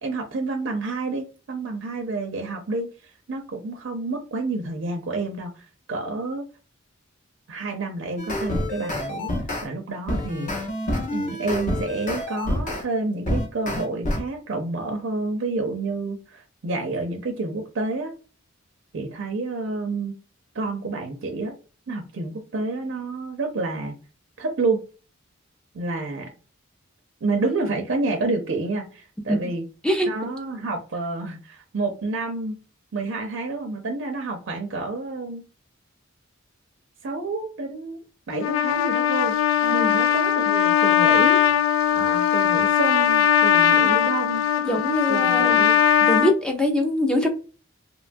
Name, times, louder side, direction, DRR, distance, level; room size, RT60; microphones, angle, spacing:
voice 1, 0.0-2.9 3.3-6.5 7.5-9.3 9.6-10.5 11.1-18.1 18.9-20.2 20.5-21.6 21.9-24.0 24.4-24.8 25.7-26.3 27.2-29.6 30.1-32.6 32.9-35.4 37.0-38.0 38.3-39.4 39.7-41.4 41.9-44.4 45.1-45.8, right 3 dB, 65° right, 0.5 m, -29 dB
sound 1, 8.2-9.7 10.1-12.8 13.3-14.2, left 1 dB, 40° left, 0.7 m, -27 dB
voice 2, 29.8-30.3 39.6-40.0 43.7-44.0 44.6-45.6 46.0-47.3, left 1 dB, 5° left, 0.5 m, -24 dB
Trumpet, 38.3-46.3, left 9 dB, 70° left, 0.3 m, -19 dB
2.9 x 2.2 x 2.5 m
head